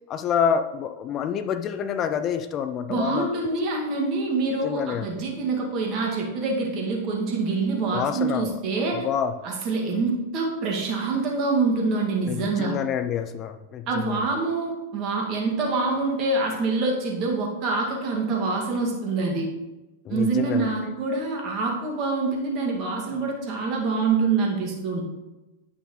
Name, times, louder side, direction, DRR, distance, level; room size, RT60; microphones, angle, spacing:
voice 1, 0.1-3.3 4.6-5.1 7.9-8.6 8.9-9.3 12.3-14.3 20.0-20.9, left 8 dB, 35° left, 10 dB, 0.4 m, -27 dB
voice 2, 2.9-9.1 9.4-12.7 13.9-19.5 20.1-25.0, right 3 dB, 40° right, -1 dB, 1.9 m, -25 dB
9.1 x 6.0 x 3.1 m, 1.1 s
figure-of-eight pair, 95°, 0 cm